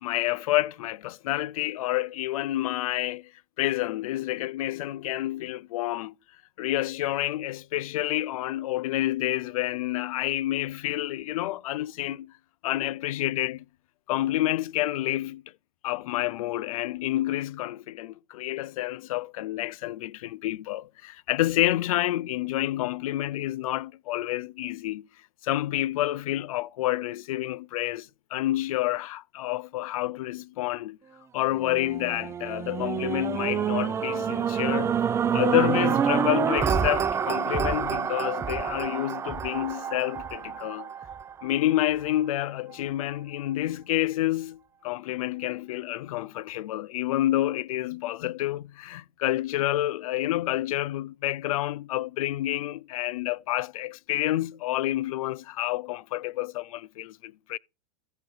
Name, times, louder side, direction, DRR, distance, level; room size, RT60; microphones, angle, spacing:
voice 1, 0.0-3.3 3.6-6.1 6.6-12.3 12.6-13.6 14.1-15.4 15.8-25.0 25.4-31.0 31.3-35.0 35.3-40.9 41.4-57.6, left 15 dB, 70° left, 0.4 m, -29 dB
sound 1, 31.5-41.8 42.4-42.5, right 7 dB, 15° right, 0.4 m, -28 dB
14.0 x 5.0 x 3.9 m
hypercardioid pair, 120°, 18 cm